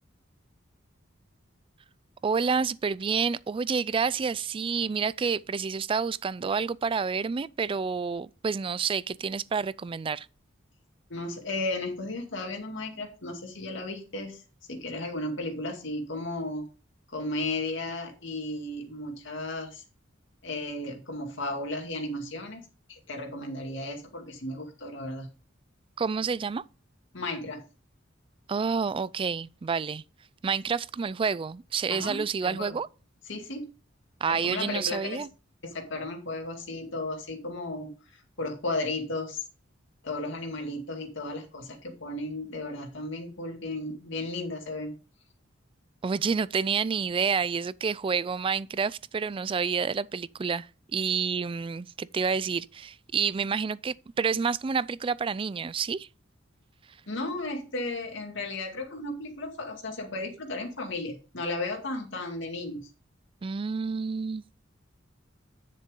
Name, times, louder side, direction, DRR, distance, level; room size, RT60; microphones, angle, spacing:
voice 1, 2.2-10.3 26.0-26.6 28.5-30.0 30.4-32.9 34.2-35.3 46.0-56.1 63.4-64.4, right 5 dB, 25° right, 0.3 m, -29 dB
voice 2, 11.1-14.4 14.7-16.6 17.1-19.8 20.4-22.6 22.9-25.3 27.1-27.6 31.9-32.8 33.3-33.7 34.3-35.2 35.6-39.4 40.0-44.9 57.1-62.9, left 2 dB, 65° left, 2.3 m, -34 dB
10.5 x 6.8 x 3.7 m
head